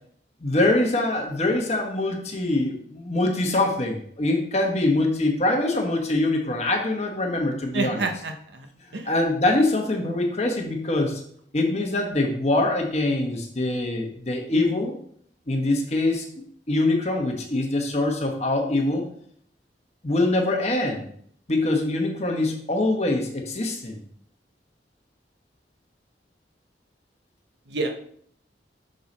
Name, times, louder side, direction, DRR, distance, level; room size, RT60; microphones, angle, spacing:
voice 1, 0.4-8.0 9.1-11.2 11.5-14.9 15.5-16.3 16.7-19.0 20.0-21.1 21.5-24.0, left 2 dB, 40° left, 2 dB, 1.1 m, -24 dB
voice 2, 7.7-8.7 8.9-9.1 27.7-27.9, right 3 dB, 80° right, 5 dB, 0.9 m, -28 dB
6.5 x 3.9 x 4.1 m, 0.63 s
head